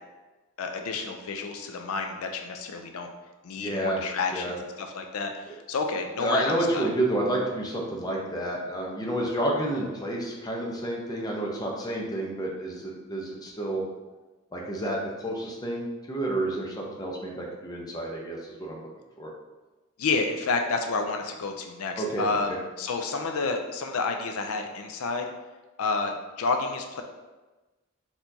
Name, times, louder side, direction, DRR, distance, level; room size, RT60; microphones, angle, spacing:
voice 1, 0.6-3.1 3.4-6.9 20.0-25.2 25.8-27.0, left 4 dB, 70° left, 5 dB, 0.4 m, -30 dB
voice 2, 3.6-4.0 4.3-4.5 6.2-13.8 14.5-18.9 19.2-19.3 22.0-22.6, right 1 dB, 15° left, -1 dB, 0.7 m, -30 dB
4.3 x 4.3 x 2.7 m, 1.2 s
head